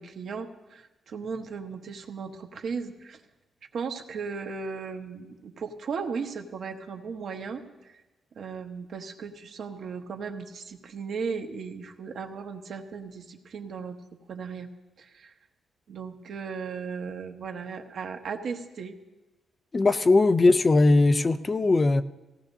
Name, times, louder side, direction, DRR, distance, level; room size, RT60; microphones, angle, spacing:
voice 1, 0.0-3.2 3.7-8.0 8.3-14.0 14.3-14.7 15.0-15.3 15.9-18.9, right 5 dB, 60° right, 4 dB, 1.1 m, -36 dB
voice 2, 19.7-22.0, left 3 dB, 25° left, 12 dB, 0.4 m, -20 dB
18.5 x 16.0 x 2.7 m, 1.1 s
wide cardioid pair, 145°, 0 cm